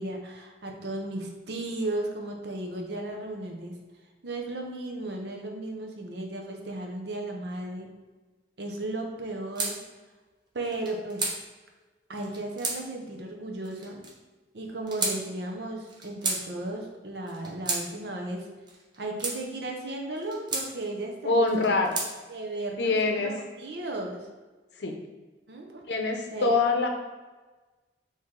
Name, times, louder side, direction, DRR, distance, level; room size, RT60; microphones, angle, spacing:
voice 1, 0.0-3.8 4.2-7.9 8.6-9.8 10.5-11.4 12.1-14.0 14.5-18.5 19.0-21.7 22.3-24.3 25.5-25.8 26.3-26.5, right 2 dB, 70° right, 2 dB, 0.7 m, -35 dB
sound 1, 9.5-9.7 10.6-11.4 12.2-12.8 13.6-14.1 14.9-15.2 15.9-16.4 17.3-17.8 18.7-19.4 20.1-20.7 21.5-22.1, right 3 dB, 25° right, 0.6 m, -31 dB
voice 2, 21.2-21.9 22.8-23.3 24.8-24.9 25.9-26.9, left 3 dB, 75° left, 3 dB, 0.6 m, -24 dB
4.8 x 2.9 x 3.6 m, 1.3 s
head